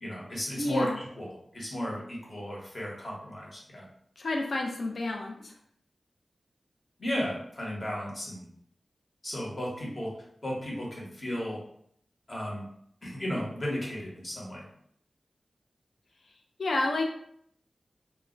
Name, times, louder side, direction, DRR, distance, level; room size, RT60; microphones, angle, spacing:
voice 1, 0.0-3.9 7.0-8.4 9.2-10.1 10.4-11.6 12.3-12.6 13.0-14.6, equal, 45° left, -4 dB, 1.0 m, -34 dB
voice 2, 0.6-1.0 4.2-5.5 16.6-17.0, left 2 dB, 65° left, 1 dB, 0.5 m, -30 dB
2.2 x 2.1 x 3.7 m, 0.68 s
wide cardioid pair, 95°, 0 cm